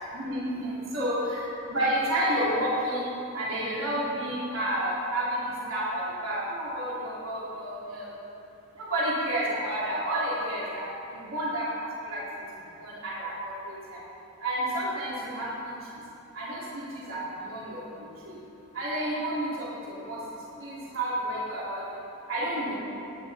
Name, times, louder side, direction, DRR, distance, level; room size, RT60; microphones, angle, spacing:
voice 1, 0.1-1.4 1.7-3.1 3.3-5.4 5.7-8.1 8.9-10.8 11.1-11.7 12.1-12.2 12.8-13.5 14.4-15.5 16.3-17.8 18.7-19.7 20.1-20.2 20.6-21.8 22.3-22.8, right 1 dB, 80° right, -8 dB, 3.2 m, -30 dB
17.5 x 9.8 x 4.2 m, 2.9 s
head